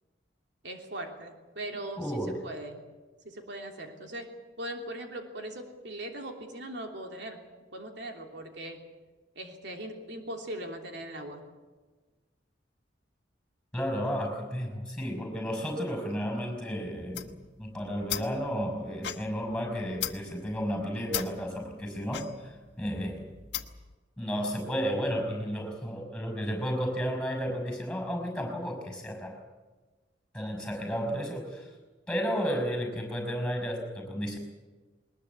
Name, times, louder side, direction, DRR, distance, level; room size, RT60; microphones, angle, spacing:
voice 1, 0.6-2.1 2.4-2.8 3.2-4.3 4.6-7.4 7.7-8.8 9.3-11.4, right 1 dB, 65° right, 2 dB, 3.1 m, -40 dB
voice 2, 2.0-2.4 13.7-23.3 24.2-29.4 30.3-31.7 32.1-34.4, equal, 5° left, 5 dB, 5.7 m, -32 dB
sound 1, 17.0-23.9, left 10 dB, 65° left, 1.6 m, -39 dB
21.0 x 20.5 x 8.4 m, 1.3 s
head